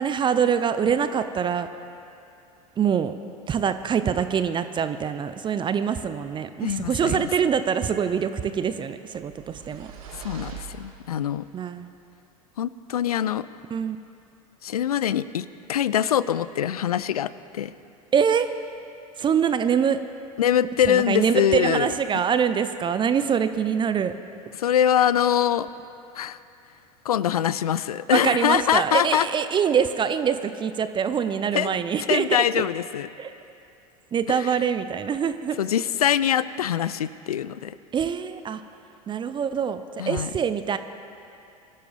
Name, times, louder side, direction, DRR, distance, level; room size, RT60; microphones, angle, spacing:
voice 1, 0.0-1.7 2.8-3.1 3.5-9.9 11.5-11.9 13.7-14.0 18.1-18.5 19.2-20.0 20.9-24.1 28.1-32.7 33.2-33.3 34.1-35.6 37.9-38.6 39.1-40.8, right 7 dB, 25° right, 11 dB, 0.6 m, -24 dB
voice 2, 6.6-7.3 10.2-11.4 12.6-13.5 14.6-17.7 20.4-21.9 24.6-25.7 26.1-26.4 27.1-29.3 31.5-31.8 32.1-33.1 34.3-34.5 35.6-37.8 40.0-40.3, left 10 dB, 80° left, 17 dB, 0.4 m, -23 dB
sound 1, 9.1-11.5, right 8 dB, 70° right, 1.8 m, -42 dB
22.5 x 12.0 x 3.4 m, 2.7 s
figure-of-eight pair, 80°, 19 cm